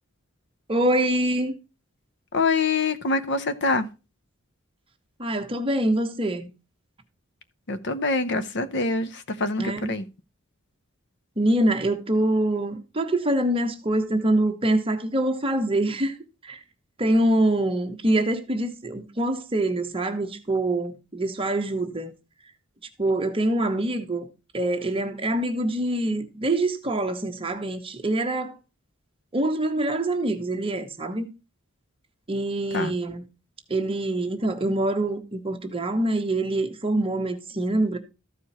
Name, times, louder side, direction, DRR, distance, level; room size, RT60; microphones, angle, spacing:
voice 1, 0.7-1.5 5.2-6.5 9.6-9.9 11.4-16.2 16.4-16.6 17.0-22.1 23.0-24.3 24.5-28.6 29.3-31.3 32.3-33.2 33.7-38.0, right 1 dB, 25° right, 1.2 m, -25 dB
voice 2, 2.3-3.9 7.7-10.0 32.7-32.9, left 3 dB, 55° left, 0.8 m, -25 dB
14.0 x 4.8 x 4.2 m
head